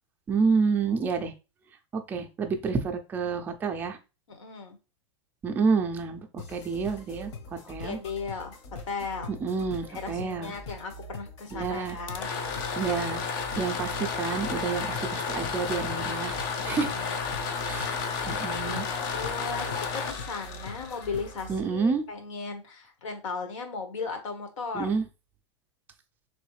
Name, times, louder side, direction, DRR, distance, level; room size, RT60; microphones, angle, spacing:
voice 1, 0.3-1.3 1.9-4.0 5.4-8.0 9.3-10.5 11.5-12.0 12.8-13.2 13.6-16.4 16.6-16.9 17.6-18.8 21.5-22.0 24.7-25.0, right 5 dB, 10° right, 5 dB, 0.4 m, -29 dB
voice 2, 4.3-4.8 7.8-8.6 8.9-9.3 9.9-12.3 16.6-17.2 18.6-24.9, left 5 dB, 90° left, 6 dB, 1.3 m, -37 dB
sound 1, 6.4-21.6, left 2 dB, 65° left, 1.0 m, -43 dB
sound 2, 11.9-21.7, left 5 dB, 45° left, 0.6 m, -32 dB
3.9 x 3.1 x 3.1 m, 0.30 s
supercardioid pair, 165°, 16 cm